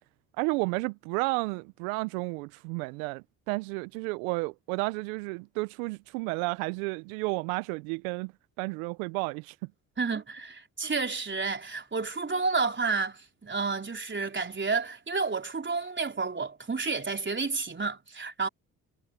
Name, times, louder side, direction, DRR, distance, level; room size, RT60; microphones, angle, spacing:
voice 1, 0.4-8.3 8.6-9.6, right 26 dB, 80° right, 0.8 m, -32 dB
voice 2, 10.0-18.5, right 4 dB, 30° right, 4.2 m, -30 dB
hypercardioid pair, 50°, 41 cm